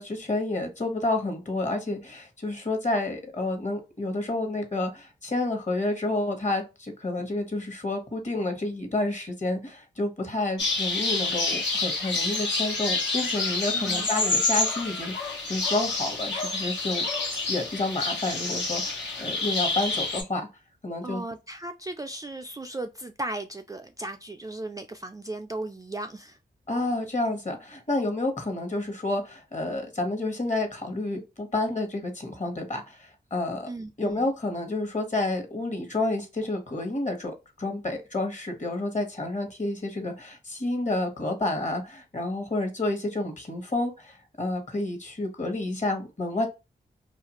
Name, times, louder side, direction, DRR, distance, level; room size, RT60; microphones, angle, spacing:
voice 1, 0.0-17.1 17.5-20.5 20.8-21.2 26.7-33.7 34.0-46.5, left 2 dB, 40° left, 1.1 m, -30 dB
sound 1, 10.6-20.2, left 3 dB, 75° left, 1.0 m, -28 dB
voice 2, 13.7-14.3 21.0-26.4 33.7-34.3, right 2 dB, 20° right, 0.3 m, -36 dB
2.5 x 2.3 x 2.9 m
cardioid pair, 45°, 19 cm